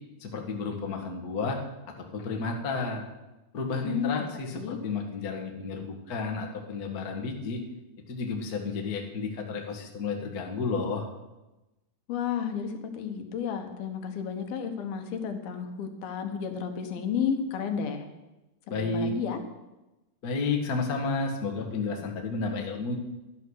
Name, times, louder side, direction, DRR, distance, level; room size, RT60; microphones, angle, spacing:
voice 1, 0.2-1.6 2.1-3.0 3.5-7.6 8.1-11.1 18.7-19.1 20.2-23.0, left 4 dB, 45° left, 1 dB, 1.1 m, -31 dB
voice 2, 3.8-4.1 4.5-4.8 12.1-18.1 18.8-19.4, left 7 dB, 75° left, 6 dB, 3.0 m, -32 dB
12.5 x 10.5 x 6.5 m, 1.0 s
omnidirectional pair, 4.6 m